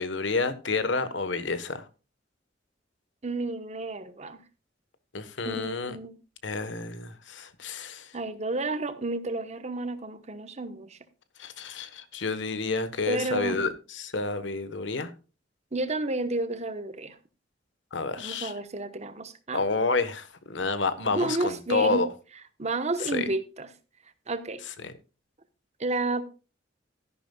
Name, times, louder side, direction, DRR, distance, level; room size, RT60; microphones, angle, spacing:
voice 1, 0.0-1.9 5.1-6.0 6.4-8.1 11.4-15.1 17.9-18.5 19.5-22.1 23.0-23.3 24.8-24.9, left 3 dB, 80° left, 1.3 m, -29 dB
voice 2, 3.2-4.4 5.4-6.2 8.1-11.0 13.1-13.6 15.7-17.1 18.2-19.6 21.1-22.0 22.6-23.7 24.3-24.6 25.8-26.2, right 2 dB, 40° right, 1.1 m, -31 dB
13.0 x 11.0 x 2.3 m
head